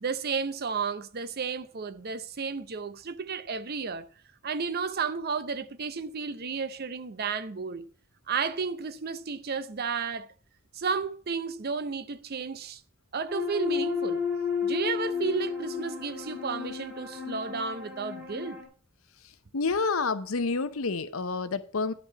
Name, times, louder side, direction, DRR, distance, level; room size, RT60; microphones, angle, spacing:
voice 1, 0.0-4.1 4.4-7.9 8.3-10.3 10.7-12.8 13.1-14.2 14.6-18.6, right 5 dB, 45° right, 0.7 m, -32 dB
sound 1, 13.3-18.6, left 6 dB, 10° right, 4.1 m, -32 dB
voice 2, 19.5-21.9, left 4 dB, 70° left, 0.8 m, -28 dB
11.0 x 5.4 x 6.8 m
head